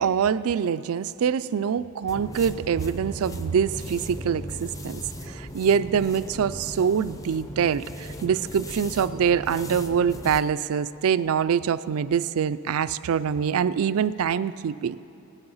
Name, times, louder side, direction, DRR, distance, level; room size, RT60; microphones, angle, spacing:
voice 1, 0.0-5.0 5.3-15.0, right 7 dB, 70° right, 16 dB, 0.4 m, -24 dB
sound 1, 2.1-10.5, equal, 15° left, 0.6 m, -38 dB
16.5 x 10.5 x 5.6 m, 2.7 s
head